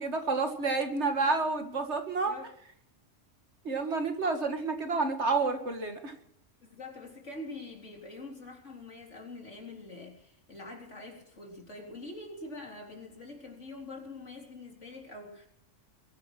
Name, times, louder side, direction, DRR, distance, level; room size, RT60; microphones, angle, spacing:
voice 1, 0.0-2.3 3.6-6.1, right 3 dB, 60° right, 6 dB, 2.2 m, -29 dB
voice 2, 6.6-15.5, left 2 dB, 70° left, 1 dB, 4.0 m, -45 dB
22.0 x 10.0 x 6.2 m, 0.69 s
omnidirectional pair, 1.3 m